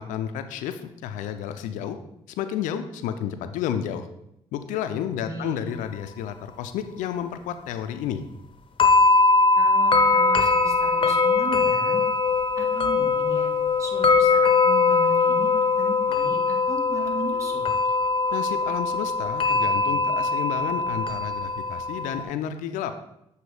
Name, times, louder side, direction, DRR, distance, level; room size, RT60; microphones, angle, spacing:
voice 1, 0.0-2.0 2.4-4.1 4.5-8.2 18.3-22.9, left 9 dB, 80° left, 9 dB, 0.4 m, -31 dB
voice 2, 5.2-5.7 9.5-12.0 12.6-13.5 13.8-17.6, right 3 dB, 25° right, 0 dB, 1.7 m, -37 dB
sound 1, 8.8-22.2, left 3 dB, 40° left, 0.8 m, -21 dB
7.9 x 2.7 x 4.8 m, 0.80 s
supercardioid pair, 55°, 13 cm